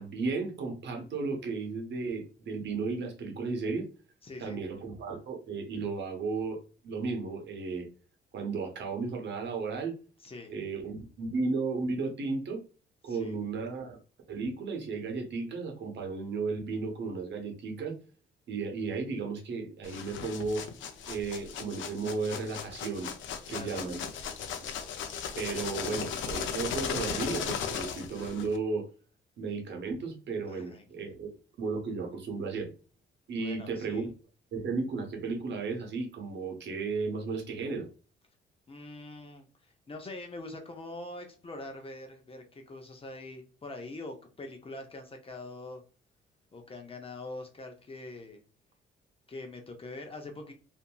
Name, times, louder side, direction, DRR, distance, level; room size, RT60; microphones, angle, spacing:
voice 1, 0.0-3.9 4.4-6.6 6.8-7.9 8.3-9.9 10.5-12.6 13.0-14.0 14.3-18.0 18.5-20.6 21.0-23.1 23.5-24.0 25.3-28.9 29.4-31.3 31.6-32.7 33.3-34.1 34.5-37.9, right 4 dB, 65° right, 3 dB, 0.9 m, -34 dB
voice 2, 4.2-4.6 10.2-10.5 13.0-13.4 23.5-23.8 30.5-31.2 33.4-34.1 38.7-45.8 46.5-48.4 49.3-50.5, left 2 dB, 30° left, 4 dB, 0.7 m, -44 dB
sound 1, 19.8-28.6, left 7 dB, 75° left, 0.5 m, -37 dB
2.7 x 2.6 x 2.2 m, 0.36 s
cardioid pair, 90°, 20 cm